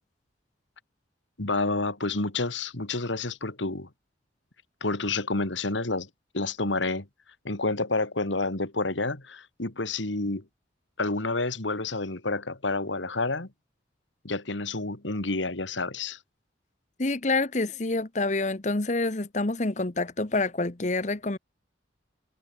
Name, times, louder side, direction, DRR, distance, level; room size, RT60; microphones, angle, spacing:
voice 1, 1.4-3.9 4.8-6.1 6.3-7.1 7.4-10.4 11.0-13.5 14.2-16.2, left 3 dB, 90° left, 2.5 m, -29 dB
voice 2, 17.0-21.4, left 2 dB, 40° left, 1.1 m, -27 dB
head